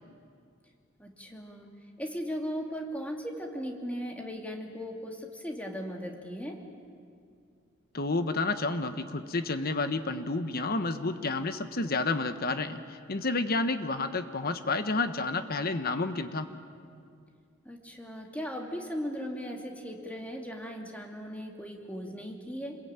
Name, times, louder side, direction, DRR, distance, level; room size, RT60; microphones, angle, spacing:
voice 1, 1.0-1.7 2.0-6.6 17.6-22.8, equal, 5° left, 1 dB, 2.6 m, -37 dB
voice 2, 7.9-16.5, left 3 dB, 50° left, 9 dB, 1.3 m, -30 dB
27.5 x 21.0 x 9.0 m, 2.3 s
head